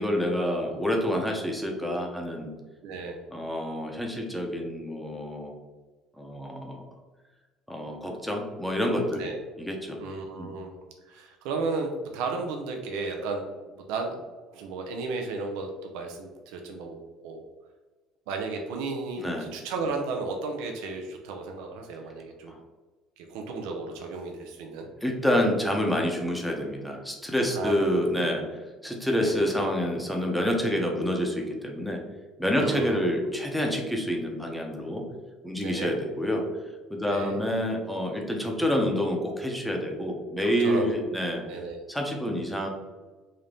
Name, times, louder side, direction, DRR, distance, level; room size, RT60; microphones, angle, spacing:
voice 1, 0.0-2.5 3.3-5.5 6.2-6.8 7.7-9.2 9.6-10.0 10.4-10.5 19.2-19.5 22.5-22.6 25.0-32.0 32.4-35.0 35.4-36.5 36.9-41.4 41.9-42.7, equal, ahead, 1 dB, 0.7 m, -28 dB
voice 2, 2.8-3.2 9.1-9.4 10.0-10.7 11.0-13.4 13.9-14.2 14.5-17.0 17.2-17.4 18.3-22.5 23.2-24.9 27.5-28.1 29.2-29.5 32.6-33.0 35.6-35.9 37.1-37.4 40.6-41.2 41.5-41.8, right 3 dB, 85° right, 3 dB, 0.5 m, -34 dB
3.7 x 2.7 x 3.4 m, 1.3 s
cardioid pair, 120°, 0 cm